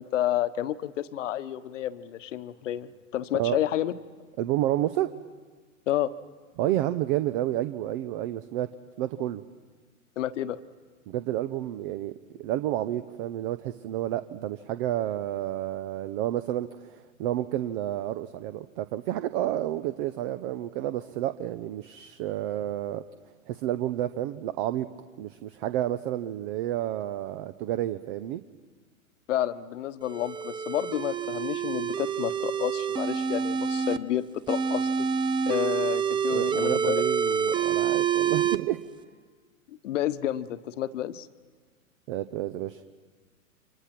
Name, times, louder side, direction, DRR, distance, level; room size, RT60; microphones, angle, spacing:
voice 1, 0.0-3.9 5.9-6.1 10.2-10.6 29.3-34.9 35.4-37.0 39.7-41.3, left 12 dB, 60° left, 14 dB, 1.2 m, -30 dB
voice 2, 4.4-5.1 6.6-8.7 9.0-9.4 11.1-12.1 12.4-23.0 23.5-24.9 25.2-28.4 36.3-38.8 42.1-42.8, right 13 dB, 40° right, 13 dB, 0.8 m, -30 dB
sound 1, 30.0-34.0 34.5-38.6, right 7 dB, 10° right, 0.6 m, -27 dB
29.5 x 25.0 x 6.0 m, 1.5 s
hypercardioid pair, 115°, 41 cm